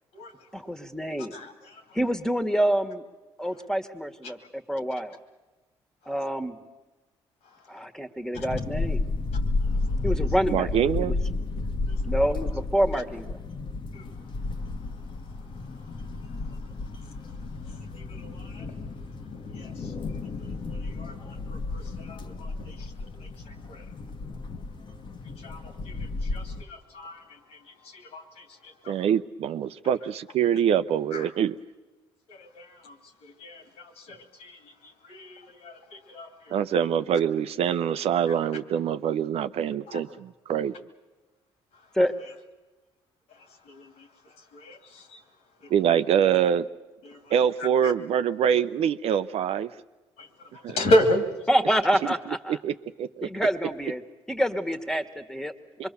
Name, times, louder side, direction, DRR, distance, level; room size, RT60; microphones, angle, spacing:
voice 1, 0.5-1.3 2.0-3.0 3.4-4.4 4.7-5.2 6.1-6.6 7.7-9.0 10.0-10.7 11.0-11.1 12.1-13.3 42.0-42.1 51.5-52.2 52.4-52.5 53.2-54.0 54.3-55.5, equal, 5° left, 7 dB, 1.8 m, -26 dB
sound 1, 8.3-26.6, left 3 dB, 50° left, 1.4 m, -32 dB
voice 2, 10.5-11.2 28.9-31.5 36.5-40.8 45.7-46.7 47.3-49.7 50.6-50.8 52.0-53.5, right 9 dB, 65° right, 11 dB, 0.7 m, -25 dB
voice 3, 18.2-18.6 19.5-19.7 20.7-21.1 21.5-21.8 22.1-22.7 23.7-23.8 25.4-25.6 26.3-26.4 26.7-27.2 28.1-28.2 28.8-28.9 31.1-31.2 32.3-32.9 33.4-34.5 35.1-35.7 36.1-36.6 43.8-43.9 44.6-44.8 47.1-47.2 47.8-47.9 50.2-50.3 50.7-51.2, equal, 75° left, 6 dB, 2.6 m, -30 dB
25.5 x 22.5 x 7.0 m, 1.2 s
supercardioid pair, 65°, 11 cm